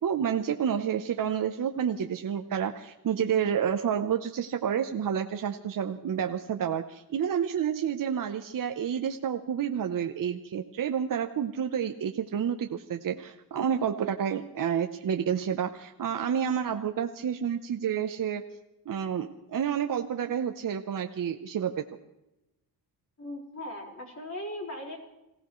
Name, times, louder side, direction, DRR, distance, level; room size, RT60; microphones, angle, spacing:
voice 1, 0.0-18.5 18.9-21.9, right 8 dB, 50° right, 6 dB, 0.8 m, -29 dB
voice 2, 23.2-25.0, left 1 dB, 40° left, -1 dB, 4.7 m, -38 dB
27.0 x 16.0 x 3.1 m, 0.93 s
cardioid pair, 95°, 41 cm